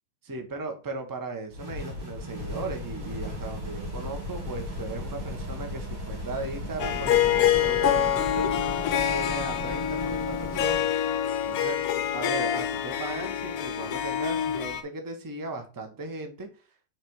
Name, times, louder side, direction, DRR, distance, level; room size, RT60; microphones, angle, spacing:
voice 1, 0.2-8.5 9.1-10.9 11.5-11.8 12.1-16.5, right 3 dB, 25° right, 4 dB, 0.5 m, -37 dB
sound 1, 1.5-10.9, left 1 dB, 50° right, 2.5 m, -36 dB
Harp, 6.8-14.8, left 10 dB, 70° left, 0.9 m, -26 dB
6.2 x 3.4 x 4.5 m, 0.34 s
omnidirectional pair, 2.0 m